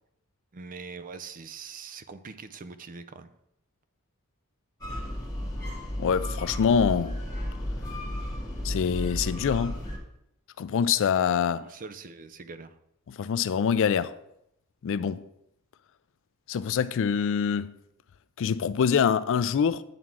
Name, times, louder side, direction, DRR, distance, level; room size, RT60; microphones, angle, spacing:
voice 1, 0.5-3.3 11.6-12.7, right 5 dB, 40° right, 0.5 m, -42 dB
sound 1, 4.8-10.0, left 1 dB, 15° left, 1.9 m, -33 dB
voice 2, 6.0-7.2 8.6-9.8 10.6-11.7 13.1-14.1 14.8-15.2 16.5-17.7 18.4-19.8, left 7 dB, 60° left, 0.4 m, -25 dB
9.2 x 3.7 x 6.0 m
head